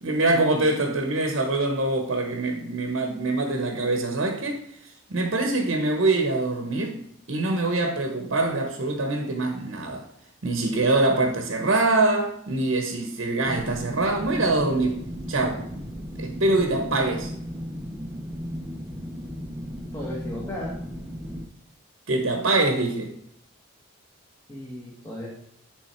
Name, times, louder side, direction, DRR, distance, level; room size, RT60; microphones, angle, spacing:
voice 1, 0.0-4.6 5.1-7.0 7.3-10.1 10.4-15.0 15.3-15.6 16.2-17.3 22.1-23.1, right 2 dB, 60° right, 0.8 m, -24 dB
sound 1, 13.4-21.4, equal, 10° right, 0.5 m, -35 dB
voice 2, 19.9-20.7 24.5-25.3, left 1 dB, 15° left, 1.2 m, -35 dB
9.5 x 3.5 x 4.3 m
head